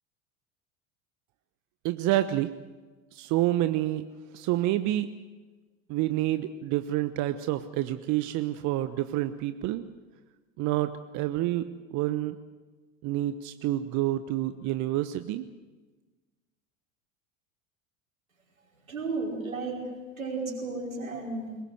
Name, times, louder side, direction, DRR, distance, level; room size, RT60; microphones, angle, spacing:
voice 1, 1.8-2.5 3.1-4.1 4.3-5.1 5.9-9.8 10.6-11.6 11.9-12.4 13.0-15.5, right 14 dB, 45° right, 11 dB, 1.0 m, -28 dB
voice 2, 18.9-19.8 20.2-21.6, right 3 dB, 90° right, -1 dB, 5.4 m, -33 dB
22.5 x 20.5 x 7.8 m, 1.3 s
figure-of-eight pair, 80°, 40 cm